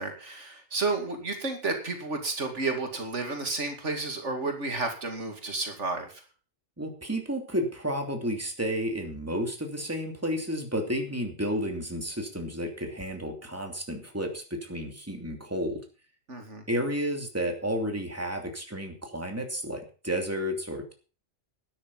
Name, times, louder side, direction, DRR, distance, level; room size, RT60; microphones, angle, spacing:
voice 1, 0.0-6.2 16.3-16.6, right 3 dB, 75° right, 4 dB, 2.7 m, -31 dB
voice 2, 6.8-15.8 16.7-20.9, equal, 10° right, 3 dB, 2.9 m, -31 dB
12.5 x 10.5 x 5.6 m, 0.37 s
omnidirectional pair, 1.2 m